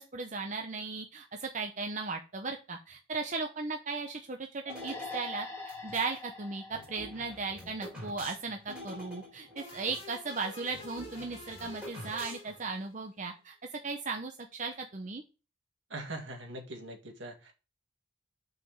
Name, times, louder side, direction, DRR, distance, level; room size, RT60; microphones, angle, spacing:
voice 1, 0.0-5.5 5.8-15.2, right 4 dB, 40° right, 4 dB, 0.7 m, -37 dB
sound 1, 4.7-8.1, left 3 dB, 15° left, 2.3 m, -44 dB
sound 2, 4.7-6.1 6.7-10.1 10.4-10.5 10.7-12.7, left 1 dB, 5° right, 3.4 m, -47 dB
sound 3, 9.6-13.1, left 3 dB, 30° left, 2.1 m, -48 dB
voice 2, 15.9-17.5, right 1 dB, 70° right, 4 dB, 2.0 m, -42 dB
6.0 x 5.1 x 6.5 m, 0.32 s
head